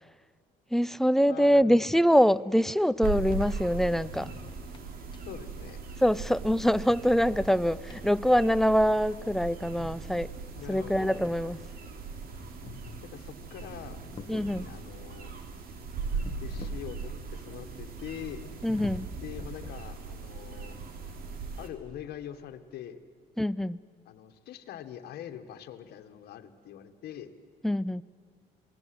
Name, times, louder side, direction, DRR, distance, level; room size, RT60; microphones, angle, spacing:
voice 1, 0.7-4.3 6.0-10.3 10.7-11.6 14.3-14.7 18.6-19.1 23.4-23.8 27.6-28.0, equal, ahead, 16 dB, 0.5 m, -24 dB
voice 2, 1.3-2.0 5.3-5.8 10.6-11.2 13.0-15.3 16.4-18.5 19.2-20.8 21.6-23.0 24.1-27.3, left 10 dB, 70° left, 8 dB, 1.8 m, -43 dB
sound 1, 3.0-21.7, right 4 dB, 60° right, 3.1 m, -39 dB
sound 2, 3.9-15.1 15.9-17.4 17.7-17.8 18.3-20.3, left 5 dB, 30° left, 1.4 m, -50 dB
27.5 x 19.0 x 7.9 m, 2.2 s
cardioid pair, 110°, 17 cm